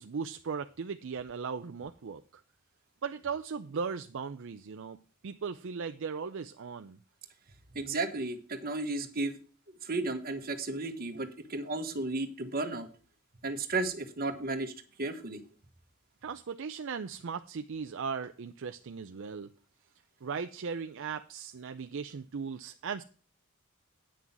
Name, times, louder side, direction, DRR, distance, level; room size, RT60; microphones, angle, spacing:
voice 1, 0.0-2.4 3.0-5.0 5.2-7.0 16.2-19.5 20.2-23.0, right 5 dB, 60° right, 9 dB, 0.5 m, -37 dB
voice 2, 7.7-9.4 9.8-12.9 13.4-14.7 15.0-15.4, right 2 dB, 40° right, 7 dB, 1.3 m, -33 dB
9.4 x 6.1 x 7.2 m, 0.39 s
head